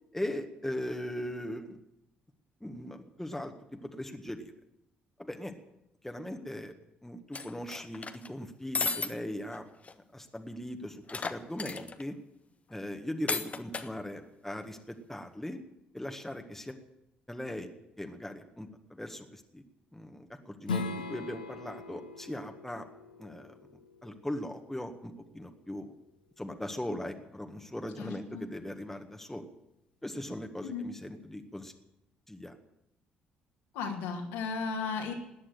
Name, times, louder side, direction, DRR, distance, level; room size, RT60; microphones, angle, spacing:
voice 1, 0.1-1.8 2.6-4.5 5.2-5.5 6.0-6.7 7.0-9.6 10.1-12.1 12.7-15.6 15.9-16.8 17.3-17.7 18.0-19.6 19.9-22.9 23.2-23.6 24.0-25.9 26.4-29.4 30.0-31.7 32.3-32.6, left 1 dB, 5° left, 5 dB, 1.8 m, -39 dB
sound 1, 7.3-8.3 8.7-9.1 9.5-9.6 9.8-9.9 11.1-12.0 13.3-13.9, left 4 dB, 30° left, 1.1 m, -34 dB
Strum, 20.6-25.8, left 4 dB, 85° left, 0.8 m, -41 dB
voice 2, 28.0-28.5 30.6-30.9 33.7-35.1, left 5 dB, 65° left, 0 dB, 2.7 m, -35 dB
18.5 x 9.9 x 7.9 m, 0.85 s
figure-of-eight pair, 45°, 5 cm